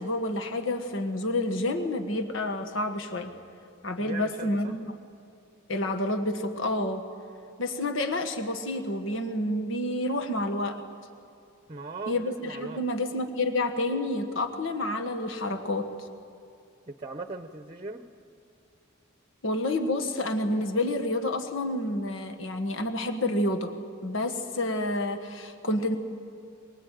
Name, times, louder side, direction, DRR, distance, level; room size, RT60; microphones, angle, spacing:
voice 1, 0.0-3.3 3.8-4.9 5.7-7.0 7.6-10.8 12.1-15.9 19.4-23.7 24.0-26.0, left 1 dB, 65° left, 5 dB, 1.6 m, -29 dB
voice 2, 4.0-4.7 11.7-12.8 16.9-18.0, right 3 dB, 25° right, 8 dB, 0.9 m, -39 dB
23.0 x 22.0 x 9.2 m, 2.4 s
head